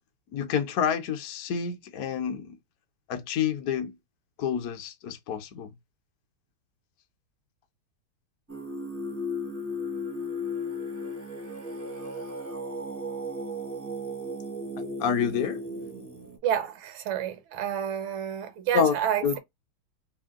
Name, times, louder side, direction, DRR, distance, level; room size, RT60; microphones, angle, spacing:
voice 1, 0.3-2.6 3.1-4.0 4.4-5.7 14.8-15.6 18.7-18.9 19.2-19.4, left 8 dB, 65° left, 0.9 m, -28 dB
Singing, 8.5-16.4, left 1 dB, 15° right, 0.5 m, -35 dB
voice 2, 16.4-19.4, right 9 dB, 85° right, 1.6 m, -29 dB
3.6 x 2.2 x 3.5 m
omnidirectional pair, 2.3 m